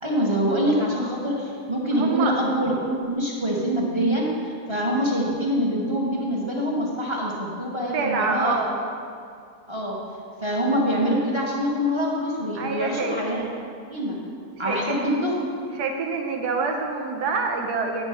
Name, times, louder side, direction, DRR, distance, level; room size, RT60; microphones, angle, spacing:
voice 1, 0.0-8.6 9.7-10.0 10.4-13.5 13.9-14.2 14.6-15.4, equal, 20° right, -3 dB, 1.0 m, -25 dB
voice 2, 1.9-2.4 7.9-8.8 12.5-13.2 14.6-15.1 15.8-18.1, right 4 dB, 85° right, 2 dB, 1.4 m, -26 dB
9.6 x 4.4 x 5.5 m, 2.3 s
omnidirectional pair, 1.7 m